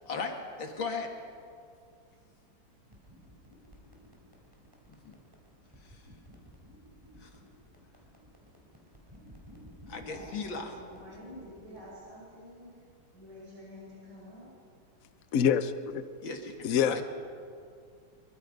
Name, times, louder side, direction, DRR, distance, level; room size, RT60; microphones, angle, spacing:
voice 1, 0.1-1.1 4.9-5.2 5.8-6.0 7.2-7.3 9.9-10.8 16.2-17.0, left 4 dB, 75° left, 3 dB, 2.8 m, -37 dB
sound 1, 2.9-11.9, equal, 10° right, 4.0 m, -55 dB
voice 2, 10.1-12.8 13.1-14.5, equal, 60° right, -6 dB, 7.2 m, -49 dB
voice 3, 15.3-16.0 16.6-17.0, left 8 dB, 55° left, 11 dB, 1.0 m, -26 dB
24.0 x 23.5 x 5.3 m, 2.3 s
omnidirectional pair, 2.1 m